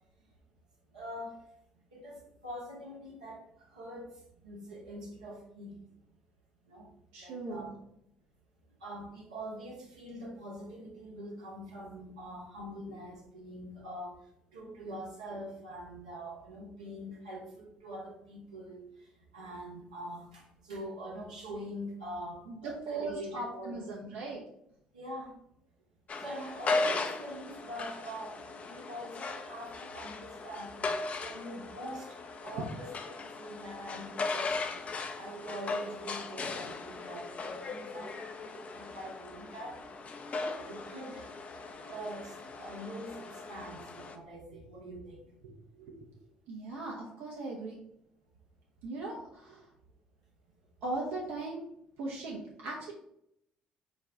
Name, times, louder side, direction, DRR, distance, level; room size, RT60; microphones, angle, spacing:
voice 1, 0.9-1.4 1.9-4.1 4.4-5.8 6.6-6.9 7.2-7.7 8.8-14.2 14.5-19.1 19.3-24.1 24.9-25.4 26.2-30.7 31.2-34.7 35.2-39.8 40.6-41.3 41.9-45.2, equal, 90° right, -4 dB, 1.1 m, -44 dB
voice 2, 7.1-7.7 14.8-14.9 22.5-24.4 44.5-44.6 45.4-45.9 46.5-47.8 48.8-49.7 50.8-51.6 52.0-52.9, right 2 dB, 70° right, -3 dB, 0.7 m, -39 dB
sound 1, 26.1-44.2, left 3 dB, 40° left, 0.5 m, -38 dB
4.3 x 2.3 x 3.7 m, 0.76 s
hypercardioid pair, 50°, 4 cm